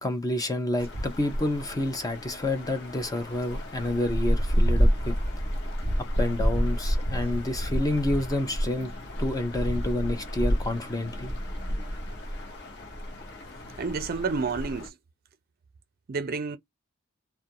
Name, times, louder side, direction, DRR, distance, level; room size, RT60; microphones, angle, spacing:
voice 1, 0.0-5.1 6.2-8.9 9.2-11.3, left 1 dB, 15° left, 0.5 m, -29 dB
sound 1, 0.8-14.9, equal, 55° left, 0.9 m, -29 dB
voice 2, 13.8-14.9 16.1-16.6, right 4 dB, 45° right, 0.5 m, -29 dB
2.4 x 2.2 x 2.8 m
head